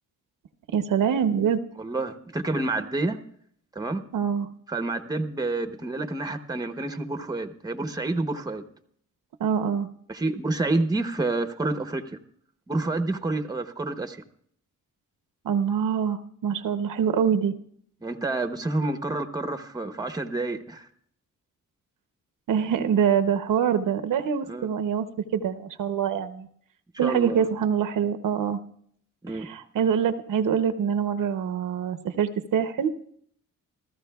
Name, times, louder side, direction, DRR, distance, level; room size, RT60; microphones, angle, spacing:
voice 1, 0.7-1.6 4.1-4.5 9.4-9.9 15.4-17.5 22.5-25.1 25.3-26.5 27.0-28.6 29.3-32.9, right 8 dB, 75° right, 9 dB, 0.8 m, -25 dB
voice 2, 1.8-3.2 3.7-4.0 4.7-8.6 10.1-12.0 12.7-14.2 18.0-20.9 24.5-24.7 27.0-27.5 29.2-29.5, right 2 dB, 10° right, 8 dB, 0.8 m, -28 dB
29.0 x 14.0 x 2.3 m, 0.64 s
wide cardioid pair, 135°, 32 cm